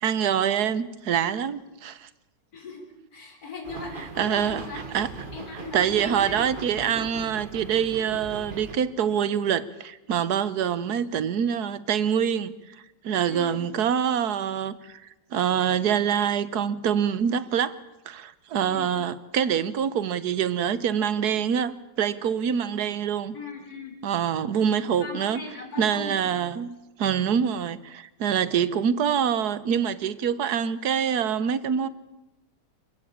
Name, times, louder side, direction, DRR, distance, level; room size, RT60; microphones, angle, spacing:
voice 1, 0.0-2.1 4.2-4.6 4.9-5.1 5.7-12.5 13.0-15.0 15.3-17.7 18.1-23.3 24.0-25.4 25.8-31.9, right 8 dB, 65° right, 1.5 m, -25 dB
voice 2, 2.5-2.8 3.1-4.8 5.3-6.5 6.8-7.1 13.3-13.6 18.6-18.9 23.3-24.0 24.5-26.2, left 3 dB, 55° left, 4.6 m, -39 dB
sound 1, 3.6-8.7, right 3 dB, 30° right, 2.2 m, -39 dB
28.0 x 15.0 x 8.7 m
omnidirectional pair, 1.9 m